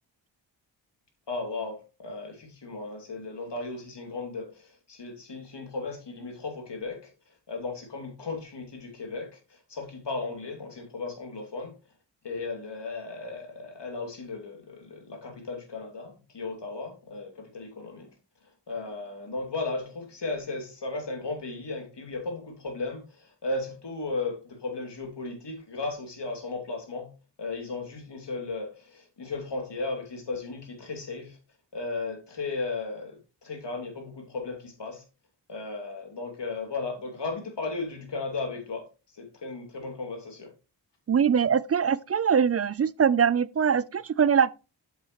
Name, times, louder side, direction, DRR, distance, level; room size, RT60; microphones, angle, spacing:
voice 1, 1.3-7.1 7.5-9.4 9.7-11.7 12.2-18.1 18.7-27.1 27.4-31.4 31.7-35.0 35.5-38.9 39.2-40.5, left 3 dB, 65° left, 2.7 m, -35 dB
voice 2, 41.1-44.5, right 7 dB, 35° right, 0.4 m, -22 dB
8.1 x 7.5 x 3.0 m
cardioid pair, 45°, 46 cm